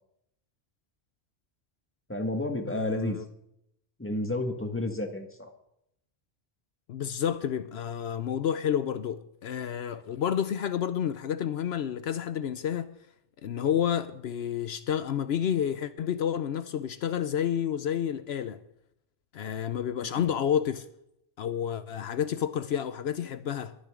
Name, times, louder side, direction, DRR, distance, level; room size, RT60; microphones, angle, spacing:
voice 1, 2.1-3.2 4.0-5.5, left 1 dB, 10° left, 1.6 m, -31 dB
voice 2, 2.7-3.3 6.9-12.9 13.4-18.6 19.3-20.9 21.4-23.7, left 9 dB, 75° left, 0.9 m, -30 dB
21.5 x 10.0 x 3.7 m
omnidirectional pair, 1.1 m